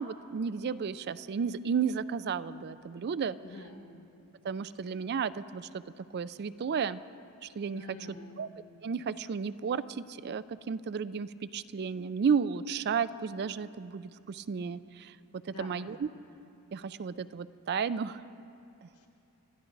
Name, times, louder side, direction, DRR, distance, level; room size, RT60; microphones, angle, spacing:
voice 1, 0.0-3.4 4.4-5.8 6.1-7.0 7.4-7.8 8.4-8.5 8.8-15.2 15.4-16.1 16.7-18.2 18.8-19.1, right 6 dB, 45° right, 15 dB, 0.4 m, -33 dB
voice 2, 3.4-3.8 7.7-8.4 15.5-15.8 18.9-19.1, left 2 dB, 80° left, 1 dB, 2.3 m, -46 dB
25.5 x 13.5 x 4.0 m, 2.7 s
head